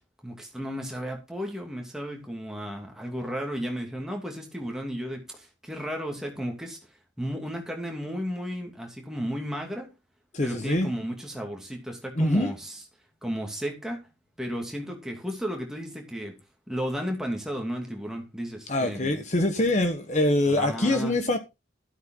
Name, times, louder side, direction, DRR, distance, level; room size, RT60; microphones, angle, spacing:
voice 1, 0.2-6.8 7.2-9.9 10.4-12.8 13.2-14.1 14.4-16.4 16.7-19.2 20.5-21.2, equal, 5° right, 2.6 m, -34 dB
voice 2, 10.3-10.9 12.2-12.5 18.7-21.4, left 1 dB, 40° left, 1.2 m, -24 dB
13.0 x 7.8 x 3.8 m
head